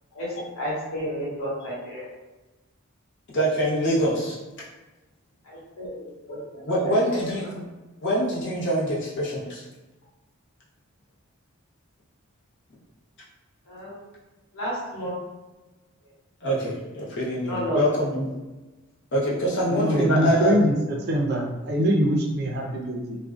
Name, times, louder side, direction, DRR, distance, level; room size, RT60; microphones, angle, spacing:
voice 1, 0.1-2.0 5.4-7.5 13.7-14.1 14.5-15.2 17.4-18.2, equal, 75° left, -7 dB, 1.2 m, -32 dB
voice 2, 3.3-4.4 6.7-7.4 8.0-9.6 16.4-18.3 19.1-20.5, equal, 60° left, -6 dB, 0.8 m, -24 dB
voice 3, 19.7-23.2, equal, 50° right, 0 dB, 0.5 m, -23 dB
2.5 x 2.2 x 2.3 m, 1.1 s
head